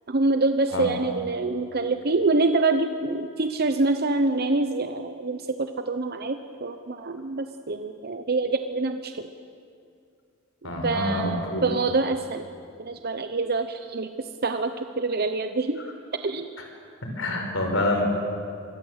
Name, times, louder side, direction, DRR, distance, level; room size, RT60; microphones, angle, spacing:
voice 1, 0.1-9.3 10.6-12.5 12.8-15.8 16.2-16.5, right 3 dB, 50° right, 8 dB, 0.9 m, -26 dB
voice 2, 10.6-11.6 17.2-18.0, left 1 dB, 75° left, 3 dB, 5.6 m, -26 dB
26.5 x 21.5 x 8.2 m, 2.4 s
head